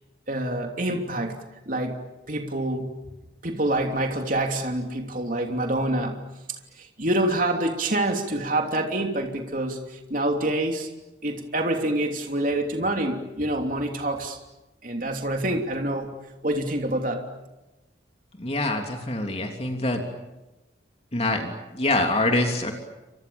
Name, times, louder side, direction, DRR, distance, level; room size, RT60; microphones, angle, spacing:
voice 1, 0.3-1.4 1.7-2.0 2.3-3.0 3.4-6.2 6.8-10.9 11.2-14.4 14.8-17.2, right 1 dB, 45° right, 3 dB, 3.1 m, -26 dB
voice 2, 18.4-20.0 21.1-22.7, left 2 dB, 35° left, 3 dB, 3.2 m, -25 dB
30.0 x 26.0 x 7.2 m, 1.0 s
head